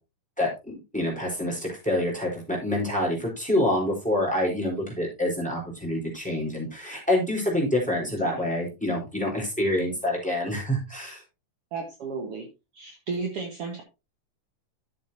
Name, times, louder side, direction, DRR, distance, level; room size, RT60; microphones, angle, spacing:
voice 1, 0.4-11.2, left 1 dB, ahead, -2 dB, 3.9 m, -27 dB
voice 2, 11.7-12.5 12.7-13.8, right 4 dB, 55° right, 2 dB, 2.1 m, -33 dB
12.5 x 7.6 x 2.8 m, 0.27 s
omnidirectional pair, 3.6 m